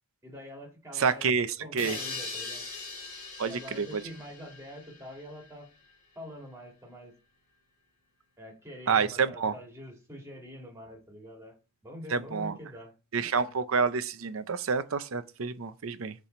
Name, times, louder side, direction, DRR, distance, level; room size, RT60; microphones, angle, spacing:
voice 1, 0.2-1.3 1.6-2.7 3.4-5.7 6.2-7.1 8.4-11.5 11.8-12.9, left 1 dB, 15° right, 2.0 m, -45 dB
voice 2, 1.0-1.5 1.7-2.0 3.4-4.0 8.9-9.5 12.1-12.6 13.1-16.1, right 5 dB, 70° right, 0.6 m, -28 dB
sound 1, 1.8-5.5, left 3 dB, 45° left, 2.8 m, -41 dB
8.2 x 3.4 x 4.3 m
head